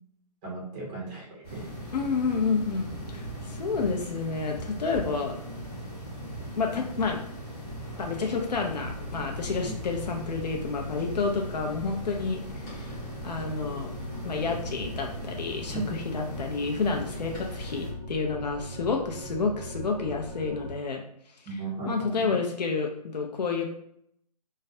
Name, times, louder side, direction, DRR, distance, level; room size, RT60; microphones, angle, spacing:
voice 1, 0.4-1.7 9.6-9.7 15.7-15.9 21.5-22.3, right 3 dB, 15° right, -5 dB, 0.4 m, -36 dB
sound 1, 1.4-17.9, right 1 dB, 25° left, 0.8 m, -39 dB
voice 2, 1.9-5.4 6.6-7.2 8.0-12.4 12.7-13.0 13.2-13.9 14.2-21.0 21.5-21.6 21.9-23.7, left 4 dB, 80° left, 1 dB, 0.5 m, -30 dB
sound 2, 8.8-20.7, left 1 dB, 90° right, 0.7 m, -41 dB
2.3 x 2.1 x 2.6 m, 0.72 s
hypercardioid pair, 160°, 21 cm